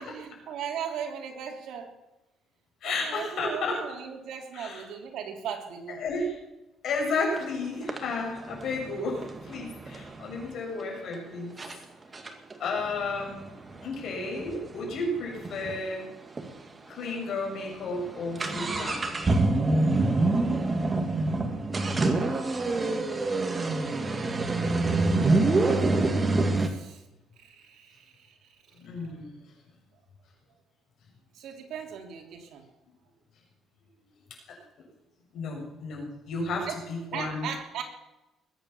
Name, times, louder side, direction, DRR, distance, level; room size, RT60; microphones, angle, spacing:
voice 1, 0.0-1.9 2.8-6.0 22.1-23.1 26.6-27.0 27.4-28.8 31.3-32.6 36.7-36.8 37.1-37.8, right 8 dB, 75° right, 3 dB, 3.0 m, -38 dB
voice 2, 2.8-3.8 4.5-4.9 6.0-6.3 6.8-11.6 12.6-13.5 13.8-16.1 16.9-19.1 28.8-29.3 35.3-37.5, left 3 dB, 65° left, 0 dB, 6.7 m, -32 dB
sound 1, 7.3-7.4 7.9-10.5 11.1-11.2 11.6-11.8 12.1-15.8 16.1-16.2 16.4-16.5 17.1-17.2 17.5-26.7, right 2 dB, 20° right, 1.9 m, -26 dB
21.0 x 8.8 x 7.2 m, 0.99 s
cardioid pair, 135°, 0 cm